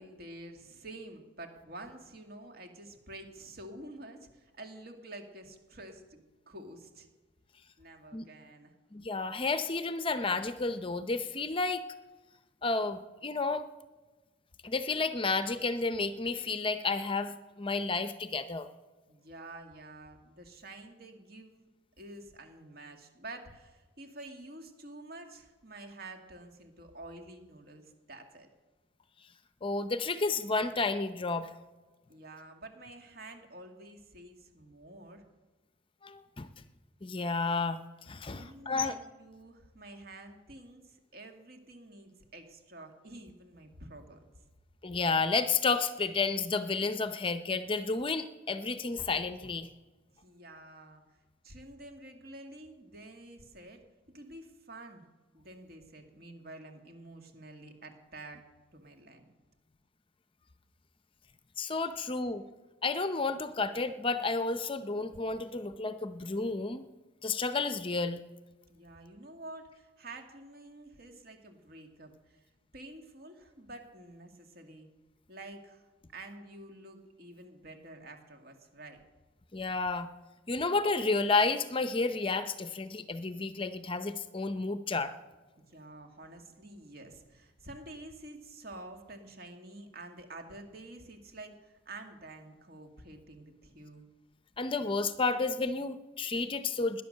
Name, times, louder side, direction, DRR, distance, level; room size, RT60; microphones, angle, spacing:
voice 1, 0.0-7.1 7.8-8.7 19.1-21.7 22.0-28.5 32.1-35.2 38.3-44.2 50.2-51.0 51.4-53.8 54.1-55.0 55.3-58.4 58.7-59.3 68.7-72.5 72.7-74.9 75.3-75.9 76.1-79.0 85.6-94.0, right 2 dB, 50° right, 5 dB, 2.1 m, -49 dB
voice 2, 8.9-11.8 12.6-13.6 14.6-18.7 29.6-31.5 36.0-36.5 37.0-39.0 44.8-49.7 61.6-62.4 62.8-66.8 67.2-68.2 79.5-80.1 80.5-85.1 94.6-97.0, left 3 dB, 25° left, 11 dB, 0.6 m, -31 dB
18.5 x 10.5 x 6.6 m, 1.3 s
head